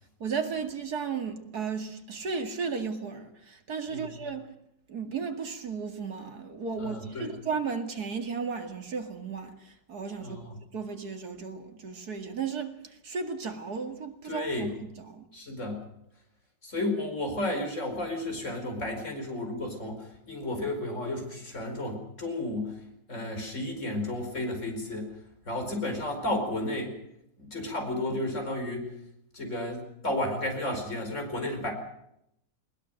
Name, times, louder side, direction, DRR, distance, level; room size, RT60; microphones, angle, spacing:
voice 1, 0.2-4.5 4.9-10.4 10.7-15.3, right 5 dB, 60° right, 2.7 m, -35 dB
voice 2, 6.8-7.3 10.2-10.6 14.2-14.7 15.3-15.8 16.6-22.8 23.1-25.1 25.5-27.0 27.4-28.9 29.3-31.7, left 1 dB, 40° left, 5.2 m, -32 dB
20.5 x 20.0 x 7.8 m
omnidirectional pair, 1.9 m